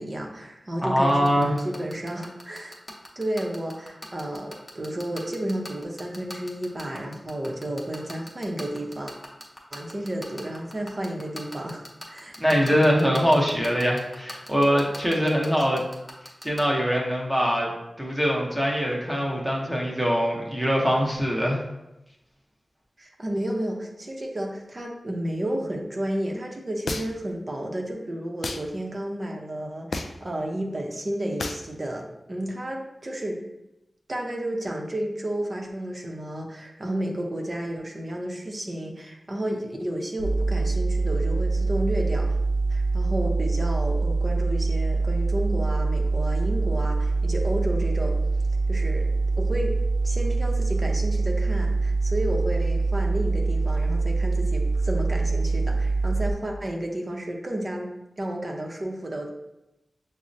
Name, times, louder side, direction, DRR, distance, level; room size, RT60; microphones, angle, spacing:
voice 1, 0.0-2.8 3.2-9.1 9.7-12.3 12.7-13.0 23.0-33.4 34.1-42.3 42.7-48.1 48.7-49.1 49.4-49.7 50.0-59.3, right 1 dB, 40° right, 1 dB, 0.6 m, -32 dB
voice 2, 0.8-1.5 12.4-15.8 16.4-17.7 18.0-21.6, equal, 10° right, -2 dB, 0.8 m, -23 dB
sound 1, 1.1-16.6, left 1 dB, 25° left, 0.8 m, -39 dB
sound 2, 26.9-27.3 28.4-28.7 29.9-30.3 31.4-31.7, left 2 dB, 70° left, 0.3 m, -31 dB
sound 3, 40.2-56.3, right 3 dB, 90° right, 0.4 m, -24 dB
6.0 x 2.0 x 2.6 m, 0.93 s
wide cardioid pair, 65°, 0 cm